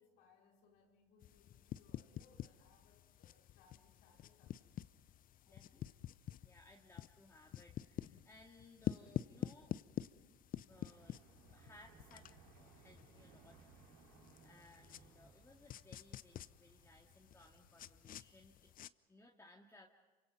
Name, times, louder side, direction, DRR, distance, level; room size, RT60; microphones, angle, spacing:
voice 1, 0.0-4.7 5.5-6.0, left 5 dB, 80° left, -1 dB, 5.1 m, -70 dB
sound 1, 1.2-18.9, left 11 dB, 50° left, 0.7 m, -48 dB
voice 2, 5.5-5.9 6.4-9.7 10.6-13.9 14.4-18.7 19.1-19.9, left 2 dB, 15° left, 0 dB, 2.1 m, -63 dB
sound 2, 10.7-18.1, right 6 dB, 80° right, 3.3 m, -65 dB
27.5 x 25.0 x 5.4 m, 1.3 s
supercardioid pair, 75°, 18 cm